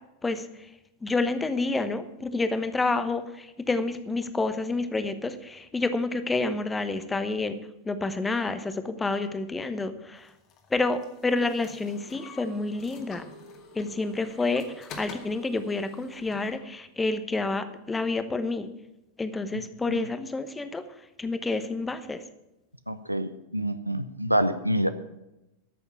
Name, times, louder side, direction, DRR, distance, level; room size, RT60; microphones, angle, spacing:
voice 1, 1.0-7.5 7.8-10.3 10.7-13.2 13.7-18.7 19.2-20.8 21.2-22.2, left 3 dB, 10° left, 11 dB, 1.1 m, -29 dB
sound 1, 10.2-16.6, left 4 dB, 35° left, 2.1 m, -47 dB
voice 2, 19.5-20.0 22.9-24.9, equal, 90° right, 11 dB, 0.7 m, -27 dB
13.0 x 7.0 x 8.3 m, 0.93 s
figure-of-eight pair, 90°, 0 cm